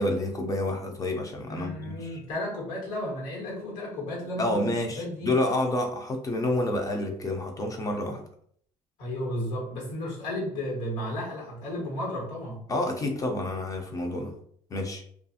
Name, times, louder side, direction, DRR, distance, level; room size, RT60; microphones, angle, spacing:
voice 1, 0.0-2.2 4.4-8.2 12.7-14.4 14.7-15.0, left 1 dB, 25° left, 3 dB, 0.4 m, -29 dB
voice 2, 1.5-5.4 9.0-12.6, left 1 dB, 85° left, -2 dB, 1.3 m, -33 dB
2.5 x 2.4 x 2.7 m, 0.63 s
cardioid pair, 115°, 13 cm